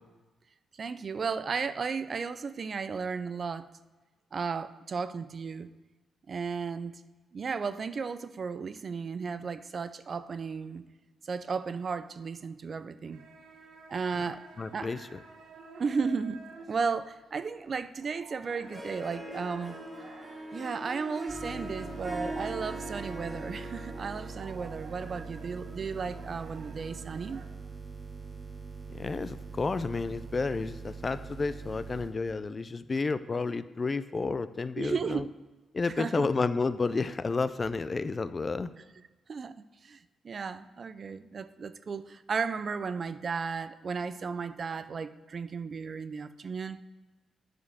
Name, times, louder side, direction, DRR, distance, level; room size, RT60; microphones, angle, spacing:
voice 1, 0.8-3.7 4.3-5.7 6.3-7.0 7.3-10.8 11.2-13.2 13.9-14.4 14.7-14.9 15.8-19.8 20.5-27.4 34.8-35.3 35.9-36.3 39.3-39.6 39.8-40.0 40.2-46.8, right 5 dB, 40° right, 13 dB, 0.4 m, -34 dB
sound 1, 13.1-23.7 24.0-27.4, right 4 dB, 80° right, 1.3 m, -50 dB
voice 2, 14.6-15.2 28.9-35.2 35.7-38.7, left 4 dB, 30° left, 13 dB, 0.3 m, -31 dB
Harp, 18.6-27.2, right 1 dB, 5° right, 1.5 m, -42 dB
sound 2, 21.3-32.1, right 5 dB, 25° right, 1.8 m, -43 dB
9.8 x 5.1 x 6.2 m, 1.2 s
cardioid pair, 135°, 0 cm